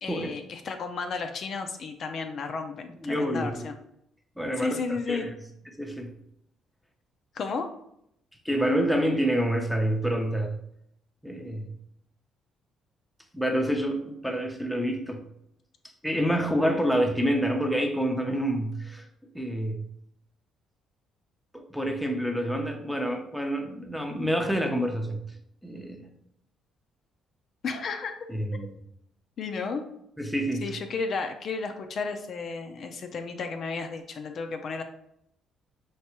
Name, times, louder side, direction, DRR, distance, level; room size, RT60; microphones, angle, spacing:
voice 1, 0.0-3.7 4.6-5.3 7.3-7.7 27.6-28.1 28.5-28.7 29.4-29.8 30.6-34.8, left 4 dB, 55° left, 5 dB, 0.4 m, -33 dB
voice 2, 3.0-3.7 4.4-4.8 5.1-5.3 5.7-6.1 8.4-10.6 11.2-11.7 13.3-15.2 16.0-19.1 19.3-19.8 21.5-25.2 25.6-26.1 28.3-28.8 30.2-30.7, equal, ahead, 3 dB, 0.6 m, -27 dB
4.5 x 3.2 x 3.0 m, 0.75 s
cardioid pair, 105°, 0 cm